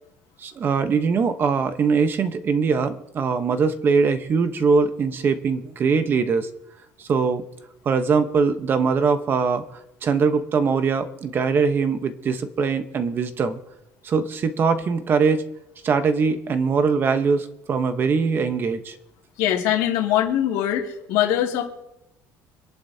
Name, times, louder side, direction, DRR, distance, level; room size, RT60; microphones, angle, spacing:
voice 1, 0.4-6.5 7.0-7.4 7.8-9.6 10.0-13.6 14.0-15.5 15.8-19.0, right 5 dB, 30° right, 9 dB, 1.1 m, -22 dB
voice 2, 19.4-21.6, left 11 dB, 90° left, 0 dB, 2.4 m, -22 dB
26.0 x 11.0 x 2.8 m, 0.86 s
cardioid pair, 155°, 7 cm